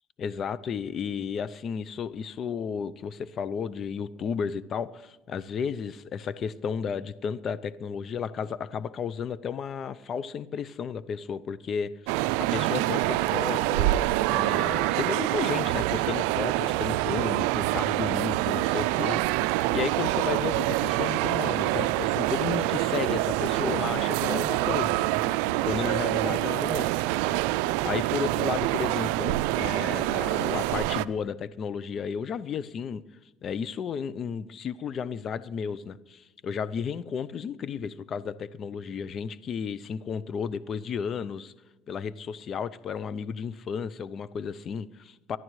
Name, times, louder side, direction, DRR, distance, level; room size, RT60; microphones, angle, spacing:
voice 1, 0.2-13.9 14.3-25.0 25.6-26.9 27.2-27.4 27.8-33.0 33.4-41.5 41.9-45.4, left 6 dB, 50° left, 16 dB, 0.6 m, -33 dB
sound 1, 12.1-31.1, right 17 dB, 85° right, 0.3 m, -26 dB
24.0 x 11.0 x 3.2 m, 1.1 s
supercardioid pair, 90°, 0 cm